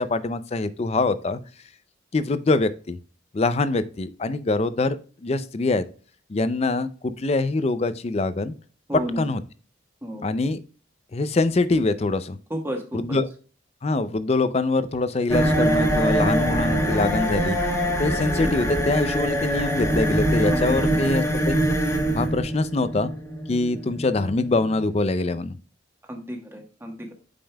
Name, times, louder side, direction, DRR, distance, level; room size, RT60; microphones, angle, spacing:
voice 1, 0.0-1.4 2.1-3.0 3.3-5.0 5.2-5.8 6.3-8.5 9.2-9.4 10.2-10.6 11.1-12.4 12.9-13.3 13.8-17.6 18.0-21.6 22.2-23.1 23.5-25.5, left 3 dB, 30° left, 14 dB, 0.4 m, -24 dB
voice 2, 8.9-9.3 10.0-10.3 12.5-13.2 20.5-21.1 26.1-27.1, equal, 10° right, 2 dB, 1.2 m, -32 dB
sound 1, 15.3-24.9, equal, 15° left, 1.3 m, -24 dB
8.6 x 5.3 x 2.3 m, 0.38 s
head